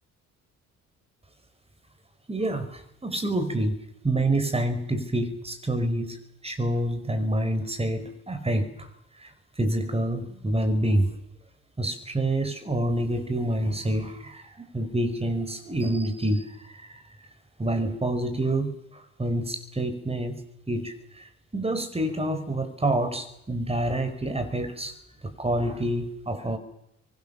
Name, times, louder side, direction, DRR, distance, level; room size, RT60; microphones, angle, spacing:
voice 1, 2.3-3.8 4.0-6.2 6.4-8.9 9.2-11.2 11.8-17.0 17.6-20.4 20.7-24.9 25.2-26.6, right 1 dB, 20° right, 9 dB, 5.2 m, -27 dB
26.0 x 24.0 x 7.1 m, 0.79 s
cardioid pair, 90°, 30 cm